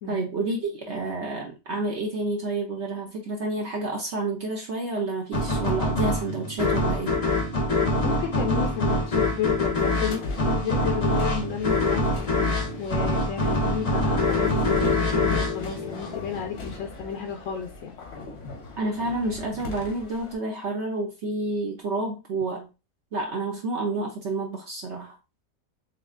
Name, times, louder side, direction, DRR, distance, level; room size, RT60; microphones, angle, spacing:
voice 1, 0.1-7.1 18.8-22.7 23.1-25.1, right 2 dB, 55° right, 1 dB, 0.9 m, -29 dB
sound 1, 5.3-16.6, left 2 dB, 35° left, 0.6 m, -25 dB
voice 2, 8.0-12.1 12.8-17.9, left 7 dB, 65° left, 3 dB, 0.9 m, -32 dB
sound 2, 9.8-20.3, left 3 dB, 85° left, 1.5 m, -39 dB
4.3 x 3.1 x 2.3 m, 0.28 s
omnidirectional pair, 1.6 m